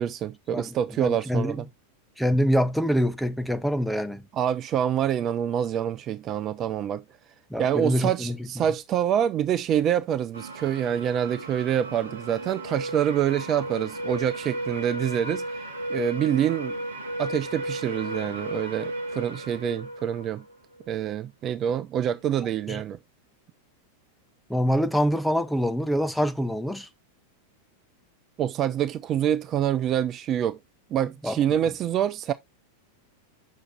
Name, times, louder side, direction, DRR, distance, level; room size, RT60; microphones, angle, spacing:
voice 1, 0.0-1.7 4.3-7.0 7.6-15.4 15.9-16.8 17.2-20.4 20.9-23.0 28.4-30.6 30.9-32.3, right 9 dB, 30° right, 0.5 m, -26 dB
voice 2, 1.0-1.7 2.2-4.3 7.5-8.4 22.7-22.8 24.5-26.9 31.2-31.4, equal, ahead, 0.8 m, -25 dB
sound 1, 10.3-20.9, right 1 dB, 70° right, 1.0 m, -35 dB
7.4 x 6.3 x 3.2 m
figure-of-eight pair, 90°, 0 cm